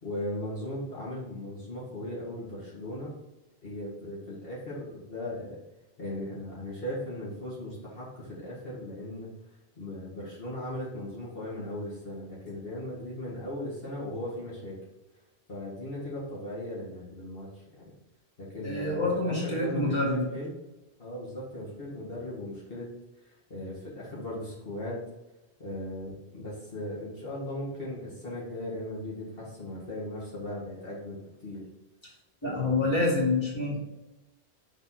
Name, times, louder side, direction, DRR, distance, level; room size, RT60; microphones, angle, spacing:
voice 1, 0.0-3.1 3.6-5.6 6.0-9.3 9.8-14.7 15.5-17.9 18.4-20.6 21.0-22.9 23.5-25.0 25.6-31.6 32.4-33.0, left 1 dB, 65° left, -7 dB, 2.0 m, -37 dB
voice 2, 18.6-20.2 32.4-33.8, left 2 dB, 25° left, -6 dB, 2.5 m, -27 dB
6.0 x 4.1 x 4.3 m, 0.99 s
omnidirectional pair, 1.1 m